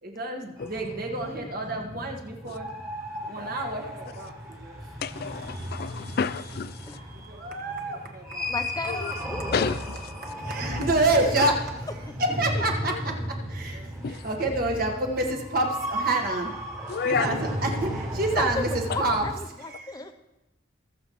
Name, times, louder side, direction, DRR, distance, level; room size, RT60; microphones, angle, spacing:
voice 1, 0.0-2.7 3.2-4.8 5.5-6.2 6.8-8.5 9.1-9.3 10.4-11.5 12.4-13.1 13.5-16.5 17.0-19.3 19.7-19.9, right 2 dB, 50° right, 1.5 m, -28 dB
sound 1, 0.6-19.3, equal, 15° right, 1.6 m, -35 dB
voice 2, 5.0-7.0 8.9-9.1 9.5-10.0 11.4-11.5 12.9-13.0 14.0-14.5 16.9-17.3 18.9-19.0, left 6 dB, 55° left, 0.4 m, -30 dB
voice 3, 8.5-9.7 12.0-12.1 18.3-18.6 18.9-20.1, left 2 dB, 20° left, 0.7 m, -34 dB
20.0 x 7.0 x 3.1 m
head